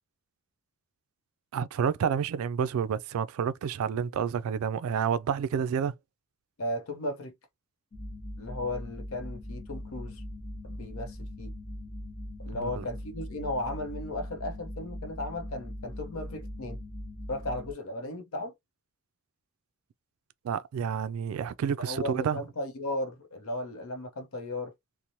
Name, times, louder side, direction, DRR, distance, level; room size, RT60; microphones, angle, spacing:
voice 1, 1.5-5.9 12.6-12.8 20.4-22.4, right 7 dB, 75° right, 0.3 m, -29 dB
voice 2, 6.6-7.3 8.4-10.2 10.6-11.5 12.4-16.8 17.3-18.5 21.8-24.7, left 1 dB, 75° left, 0.7 m, -35 dB
sound 1, 7.9-17.7, left 1 dB, 35° left, 1.1 m, -40 dB
2.9 x 2.0 x 2.6 m
head